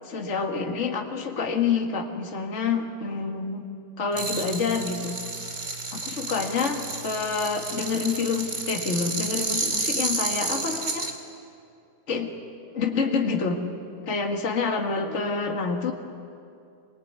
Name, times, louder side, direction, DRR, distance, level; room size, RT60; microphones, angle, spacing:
voice 1, 0.0-3.7 4.0-5.2 5.9-11.1 12.1-12.3 12.7-13.6 14.1-15.9, left 5 dB, 35° left, 2 dB, 2.1 m, -27 dB
sound 1, 4.1-11.1, right 3 dB, 35° right, 2.6 m, -31 dB
24.5 x 22.0 x 9.6 m, 2.5 s
omnidirectional pair, 2.3 m